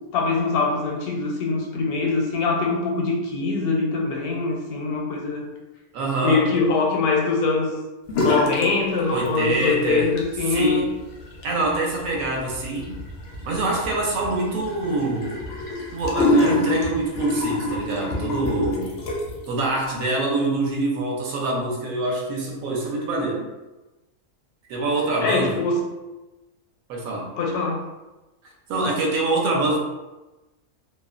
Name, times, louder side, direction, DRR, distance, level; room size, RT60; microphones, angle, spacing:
voice 1, 0.1-5.4 6.2-7.7 8.1-10.8 25.2-25.8 27.4-27.9, left 4 dB, 85° left, -1 dB, 1.1 m, -23 dB
voice 2, 5.9-6.5 9.1-10.1 10.5-10.9 11.4-13.0 13.4-15.4 15.9-19.0 19.5-23.4 24.7-25.6 26.9-27.3 28.7-29.8, right 2 dB, 75° right, -1 dB, 1.0 m, -25 dB
sound 1, 8.1-8.7 9.0-9.6 10.0-19.5, left 1 dB, 70° left, 0.6 m, -26 dB
2.7 x 2.1 x 2.4 m, 1.1 s
omnidirectional pair, 1.5 m